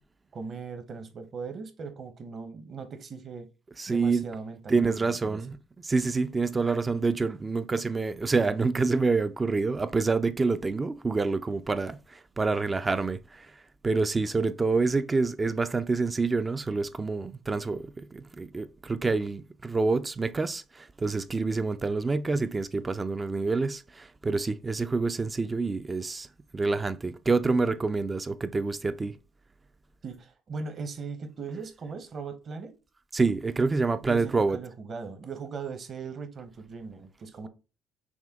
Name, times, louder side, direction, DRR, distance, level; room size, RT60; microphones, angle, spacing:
voice 1, 0.3-3.5 3.9-5.4 30.0-32.7 34.0-37.5, right 5 dB, 40° right, 0.9 m, -39 dB
voice 2, 3.8-4.2 4.7-5.6 5.8-13.5 13.8-26.3 26.5-29.1 33.1-34.6, right 4 dB, 20° right, 0.3 m, -27 dB
6.1 x 2.2 x 3.5 m
cardioid pair, 130°, 0 cm